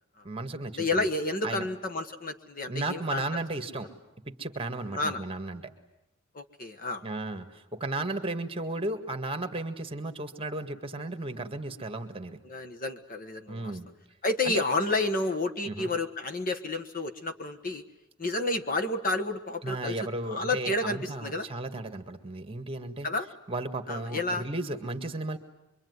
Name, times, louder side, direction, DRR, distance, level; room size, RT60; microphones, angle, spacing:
voice 1, 0.2-1.1 1.4-1.7 2.7-3.9 4.2-5.6 7.0-12.4 13.5-13.9 14.4-14.6 15.6-15.9 19.6-23.1 23.5-25.4, right 2 dB, 25° right, 7 dB, 1.8 m, -34 dB
voice 2, 0.8-3.2 4.9-5.2 6.3-7.0 12.4-13.7 14.2-17.8 18.2-21.5 23.0-23.3 23.9-24.4, left 2 dB, 45° left, 7 dB, 1.6 m, -30 dB
25.0 x 24.0 x 9.6 m, 0.88 s
head